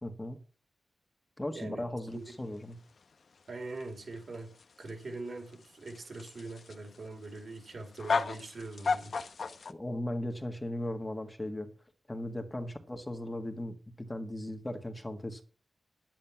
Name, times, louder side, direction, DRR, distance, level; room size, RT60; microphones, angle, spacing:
voice 1, 0.0-0.4 1.4-2.8 9.7-11.7 12.1-15.4, left 1 dB, 15° left, 1.7 m, -37 dB
voice 2, 1.5-2.2 3.5-9.1, right 2 dB, 60° right, 4.1 m, -42 dB
sound 1, 2.1-9.7, left 4 dB, 65° left, 1.1 m, -36 dB
10.5 x 9.1 x 5.9 m
wide cardioid pair, 105°, 0 cm